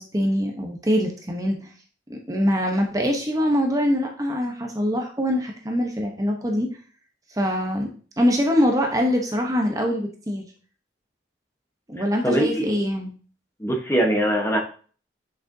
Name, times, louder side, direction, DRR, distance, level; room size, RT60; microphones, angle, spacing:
voice 1, 0.0-1.7 2.1-6.7 7.3-10.4 11.9-13.1, equal, 20° right, 2 dB, 0.9 m, -23 dB
voice 2, 12.2-12.7 13.6-14.6, right 1 dB, 15° left, 2 dB, 1.0 m, -22 dB
8.0 x 6.2 x 2.7 m, 0.40 s
head